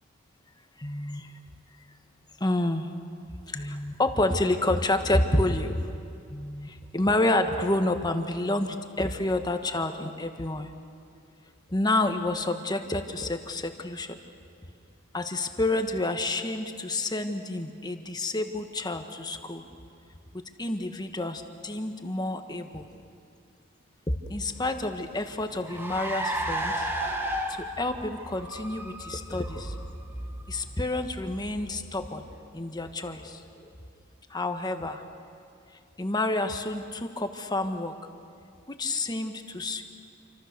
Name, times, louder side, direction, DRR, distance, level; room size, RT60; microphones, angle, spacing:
voice 1, 0.8-1.3 2.4-2.9 3.5-5.9 6.3-10.7 11.7-14.2 15.1-19.6 20.6-22.9 24.3-26.9 27.5-29.7 30.5-32.2 32.5-33.7 34.3-35.0 36.0-37.9 38.7-39.8, left 2 dB, 20° left, 6 dB, 1.4 m, -29 dB
Car, 24.6-32.4, right 1 dB, 10° right, 1.9 m, -35 dB
28.5 x 25.0 x 6.8 m, 2.5 s
head